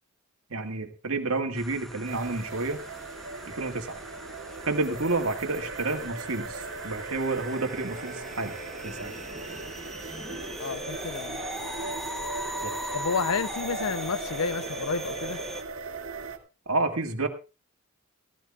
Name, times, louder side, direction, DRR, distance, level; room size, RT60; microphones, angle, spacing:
voice 1, 0.5-2.8 3.4-4.0 4.7-8.6 8.8-9.1 12.6-12.7 16.7-17.3, right 3 dB, 80° right, 1.8 m, -30 dB
sound 1, 1.6-15.6, equal, ahead, 0.9 m, -40 dB
sound 2, 2.0-16.4, right 3 dB, 60° right, 2.1 m, -38 dB
voice 2, 10.6-11.4 12.9-15.4, left 5 dB, 85° left, 0.6 m, -30 dB
16.5 x 16.0 x 2.3 m
head